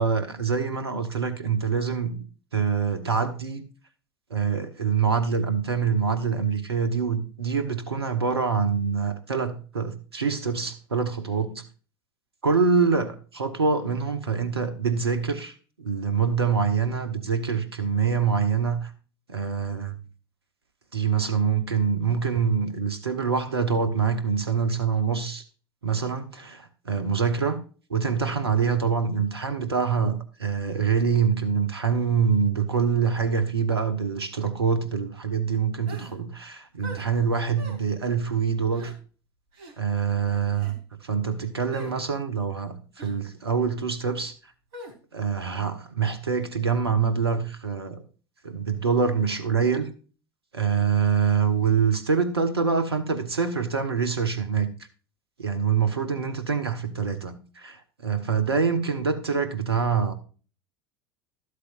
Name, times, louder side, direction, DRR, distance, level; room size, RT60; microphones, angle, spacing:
voice 1, 0.0-2.2 2.5-3.6 4.3-11.6 12.4-18.9 19.3-20.0 20.9-25.4 25.8-27.6 27.9-38.9 39.8-40.7 41.0-44.3 45.1-48.0 48.4-49.9 50.5-54.7 55.4-60.1, right 6 dB, 85° right, 1.3 m, -25 dB
sound 1, 35.9-36.1 36.8-37.1 37.6-37.8 38.7-38.9 39.5-39.7 40.5-40.8 41.7-41.9 43.0-43.2 44.7-44.9, right 2 dB, 60° right, 3.0 m, -41 dB
12.5 x 8.2 x 2.6 m
figure-of-eight pair, 75°, 13 cm